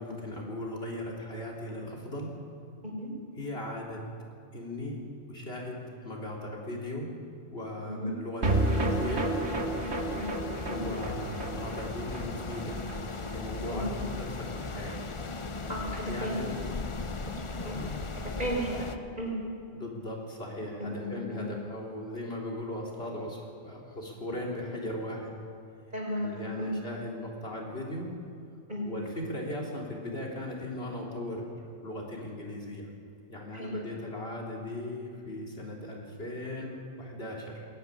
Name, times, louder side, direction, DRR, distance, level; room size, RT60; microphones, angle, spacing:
voice 1, 0.0-2.3 3.4-4.0 4.5-5.0 5.3-7.1 7.5-9.3 10.6-13.9 14.2-15.0 15.6-16.6 18.7-18.9 19.7-25.3 26.2-28.1 28.8-31.5 31.8-32.9 33.3-37.7, left 1 dB, 55° left, -1 dB, 3.6 m, -38 dB
sound 1, 8.4-19.0, left 3 dB, 30° left, 0.8 m, -37 dB
sound 2, 8.4-14.9 15.1-15.2 15.5-15.6, right 2 dB, 80° right, 2.3 m, -32 dB
voice 2, 13.7-14.0 15.7-16.6 17.3-17.4 17.6-17.8 18.1-18.9 19.1-19.3 20.8-21.4 25.9-26.7 28.7-28.8 33.5-33.9, equal, 40° right, -2 dB, 5.5 m, -35 dB
21.0 x 13.0 x 9.9 m, 2.4 s
omnidirectional pair, 1.3 m